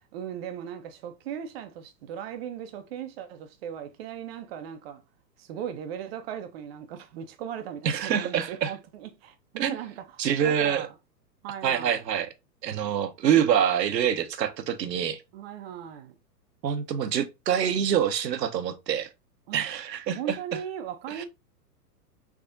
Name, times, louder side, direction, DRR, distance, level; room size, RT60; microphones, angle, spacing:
voice 1, 0.0-5.0 5.4-10.2 10.4-10.9 11.4-12.0 15.3-16.2 19.5-19.7 20.1-21.2, right 9 dB, 40° right, 0.6 m, -38 dB
voice 2, 7.8-8.7 9.6-9.8 10.2-10.9 11.6-12.3 12.6-15.2 16.6-19.1 19.5-20.4 21.1-21.2, right 9 dB, 80° right, 0.8 m, -26 dB
3.5 x 3.3 x 2.5 m
hypercardioid pair, 120°, 49 cm